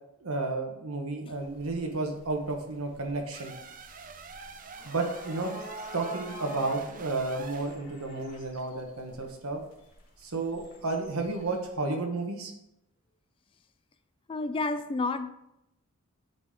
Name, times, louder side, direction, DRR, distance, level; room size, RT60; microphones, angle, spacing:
voice 1, 0.2-3.5 4.8-5.5 5.9-9.6 10.2-12.5, right 3 dB, 85° right, 3 dB, 1.2 m, -32 dB
sound 1, 1.3-11.7, equal, 90° left, 2.4 m, -48 dB
sound 2, 3.3-7.8, right 5 dB, 40° right, 0.5 m, -46 dB
voice 2, 14.3-15.3, left 3 dB, 25° left, 11 dB, 0.3 m, -30 dB
10.5 x 4.2 x 3.7 m, 0.86 s
head